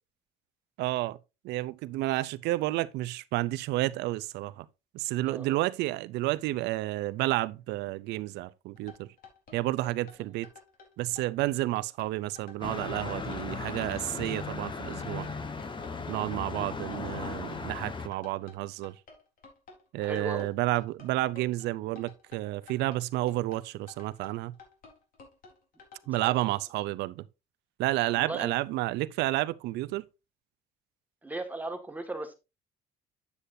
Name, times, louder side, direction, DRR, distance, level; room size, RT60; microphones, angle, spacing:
voice 1, 0.8-1.2 1.4-4.7 4.9-9.1 9.5-10.5 11.0-15.3 16.1-18.9 19.9-24.5 26.1-27.2 27.8-30.0, right 17 dB, 85° right, 0.6 m, -31 dB
voice 2, 5.3-5.6 16.1-16.3 20.0-20.5 26.0-26.3 28.1-28.5 31.2-32.3, right 2 dB, 10° right, 1.9 m, -37 dB
sound 1, 8.8-26.2, left 4 dB, 55° left, 4.0 m, -52 dB
sound 2, 12.6-18.1, left 4 dB, 30° left, 1.3 m, -37 dB
9.6 x 8.4 x 2.7 m
cardioid pair, 110°, 17 cm